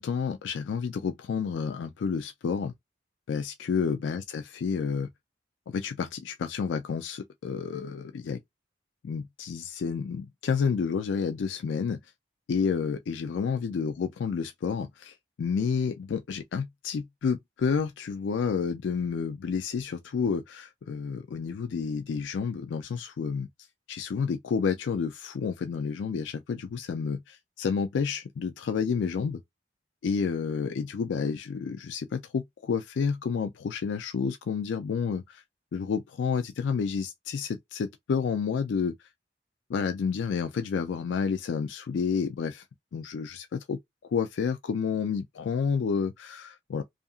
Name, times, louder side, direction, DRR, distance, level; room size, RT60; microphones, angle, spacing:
voice 1, 0.0-2.7 3.3-5.1 5.7-8.4 9.0-12.0 12.5-23.5 23.9-29.4 30.0-35.4 35.7-38.9 39.7-42.6 42.9-43.8 44.1-46.8, left 6 dB, 85° left, 0.4 m, -30 dB
2.7 x 2.4 x 2.3 m
head